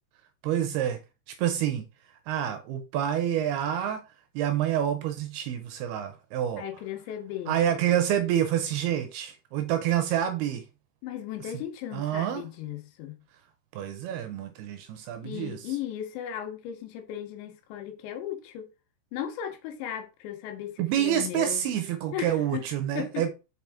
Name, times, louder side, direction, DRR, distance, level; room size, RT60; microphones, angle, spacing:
voice 1, 0.4-1.0 1.3-1.9 2.3-4.0 4.4-6.6 7.5-10.7 11.9-12.5 13.7-15.6 20.8-23.3, right 10 dB, 80° right, 2.4 m, -28 dB
voice 2, 6.6-7.6 11.0-13.2 15.2-18.7 19.1-21.7 22.1-22.6 22.9-23.3, left 10 dB, 85° left, 3.3 m, -36 dB
5.8 x 5.7 x 3.4 m
omnidirectional pair, 5.1 m